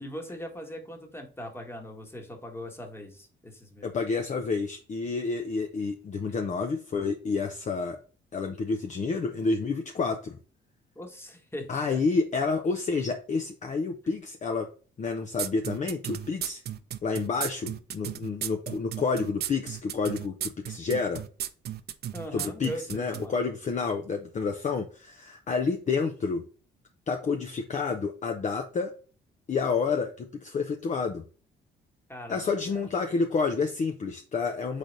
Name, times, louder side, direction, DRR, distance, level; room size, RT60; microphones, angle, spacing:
voice 1, 0.0-3.9 10.9-12.0 22.1-23.3 32.1-32.9, equal, 10° left, 3 dB, 1.2 m, -40 dB
voice 2, 3.8-8.0 8.3-10.4 11.7-14.7 15.0-16.6 17.0-21.2 22.3-26.4 27.1-28.9 29.5-31.2 32.3-34.8, left 4 dB, 35° left, 4 dB, 0.6 m, -29 dB
sound 1, 15.4-23.3, right 10 dB, 55° right, 0.4 m, -34 dB
3.9 x 3.3 x 3.9 m, 0.37 s
cardioid pair, 90°, 20 cm